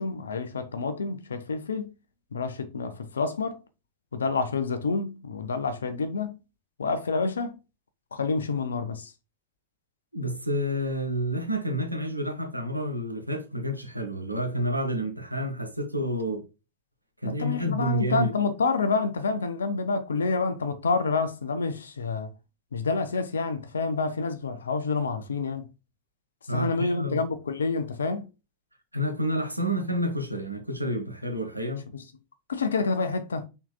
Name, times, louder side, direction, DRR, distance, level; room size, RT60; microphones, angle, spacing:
voice 1, 0.0-1.9 2.3-3.6 4.1-6.4 6.8-7.6 8.1-9.1 17.2-22.3 22.7-25.7 26.5-28.3 31.9-32.0 32.5-33.5, left 4 dB, 70° left, 0.7 m, -28 dB
voice 2, 10.1-16.4 17.2-18.3 26.5-27.2 28.9-31.9, equal, 85° right, 1.0 m, -29 dB
5.8 x 4.0 x 2.2 m
figure-of-eight pair, 90°, 0 cm